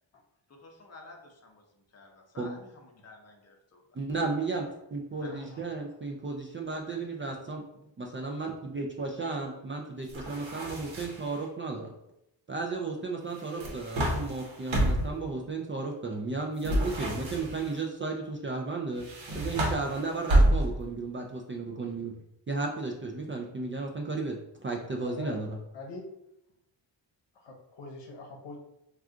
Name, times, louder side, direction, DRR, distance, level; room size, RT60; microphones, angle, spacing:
voice 1, 0.5-4.0 5.2-5.3, left 2 dB, 35° left, 2 dB, 0.7 m, -51 dB
voice 2, 3.9-7.6 8.0-11.9 12.5-19.1 19.3-22.1 22.5-25.6, right 3 dB, 30° right, 1 dB, 0.4 m, -34 dB
voice 3, 5.1-5.6 16.9-17.2 25.0-25.5 25.7-26.1 27.4-28.6, left 2 dB, 65° left, 1 dB, 0.9 m, -43 dB
sound 1, 10.1-11.4 13.3-15.2 16.6-17.8 19.0-20.9, right 1 dB, 80° right, 0.9 m, -28 dB
2.4 x 2.4 x 3.7 m, 0.84 s
cardioid pair, 70°, 46 cm